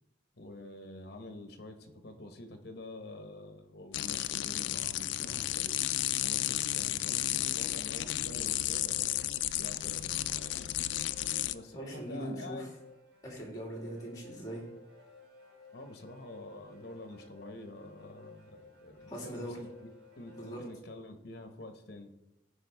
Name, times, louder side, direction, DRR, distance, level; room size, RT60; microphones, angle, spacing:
voice 1, 0.3-5.8 6.2-10.7 11.5-12.7 15.7-19.9 20.1-22.1, left 2 dB, 55° left, 6 dB, 1.0 m, -47 dB
sound 1, 3.9-11.5, left 14 dB, 75° left, 0.3 m, -33 dB
sound 2, 8.3-20.8, left 4 dB, 60° right, 1.7 m, -57 dB
voice 2, 11.2-11.5 11.7-12.7 13.2-14.6 19.1-19.6 20.3-20.6, equal, 20° left, -1 dB, 2.3 m, -41 dB
14.5 x 5.1 x 3.4 m, 0.93 s
head